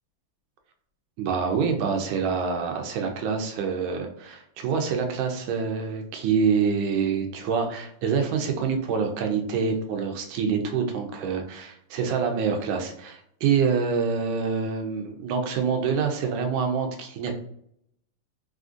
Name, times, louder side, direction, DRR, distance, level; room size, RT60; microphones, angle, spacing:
voice 1, 1.2-17.3, right 6 dB, 90° right, 4 dB, 1.4 m, -26 dB
3.5 x 2.4 x 2.5 m, 0.69 s
omnidirectional pair, 2.1 m